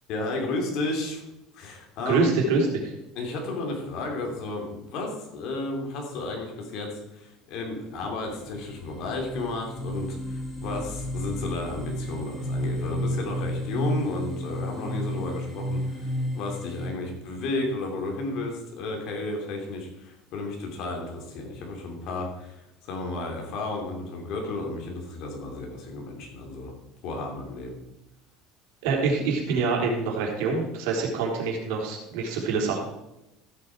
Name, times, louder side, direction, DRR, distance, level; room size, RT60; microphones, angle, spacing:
voice 1, 0.1-1.2 1.5-2.3 3.1-26.7 27.0-27.8, left 2 dB, 55° left, 1 dB, 3.0 m, -33 dB
voice 2, 2.1-2.9 28.8-32.8, right 4 dB, 85° right, 0 dB, 3.6 m, -25 dB
sound 1, 7.9-8.0 8.4-16.9, equal, 15° left, 2.6 m, -32 dB
14.5 x 6.9 x 4.7 m, 0.93 s
cardioid pair, 155°, 0 cm